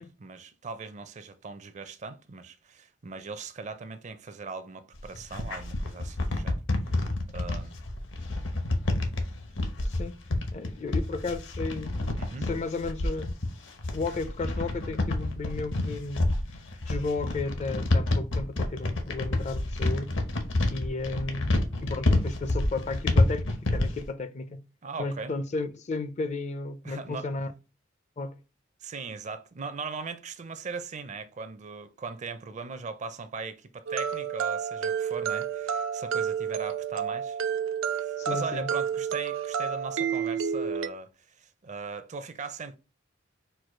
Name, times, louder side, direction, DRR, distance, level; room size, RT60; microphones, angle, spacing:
voice 1, 0.0-6.6 7.3-7.8 12.2-12.5 24.8-25.3 26.8-27.3 28.8-37.4 38.0-42.8, right 4 dB, 40° right, 0.5 m, -39 dB
sound 1, 4.9-24.0, left 2 dB, 70° left, 0.9 m, -28 dB
voice 2, 9.8-10.2 10.5-13.4 13.9-16.3 16.8-20.1 20.7-24.6 25.0-27.5 28.2-28.4 38.2-38.7, left 3 dB, 35° left, 0.4 m, -34 dB
sound 2, 33.9-40.9, right 7 dB, 85° right, 0.5 m, -30 dB
4.5 x 2.4 x 4.8 m
head